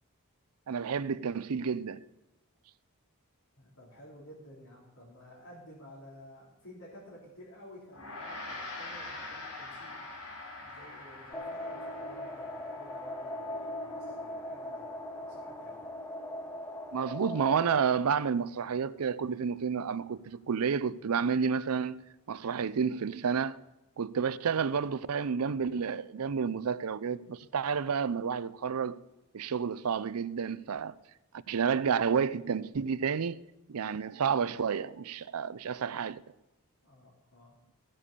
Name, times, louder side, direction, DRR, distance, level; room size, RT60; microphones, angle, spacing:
voice 1, 0.7-2.0 16.9-22.0 22.3-23.6 24.0-29.0 29.3-31.0 31.5-33.4 33.7-36.2, right 6 dB, 80° right, 0.5 m, -30 dB
voice 2, 3.6-10.0 10.6-15.8 36.8-37.6, equal, 70° left, 3.7 m, -53 dB
Gong, 7.9-17.5, left 2 dB, 90° left, 3.6 m, -46 dB
sound 1, 11.3-17.8, left 1 dB, 10° left, 0.7 m, -39 dB
15.5 x 7.5 x 6.8 m
head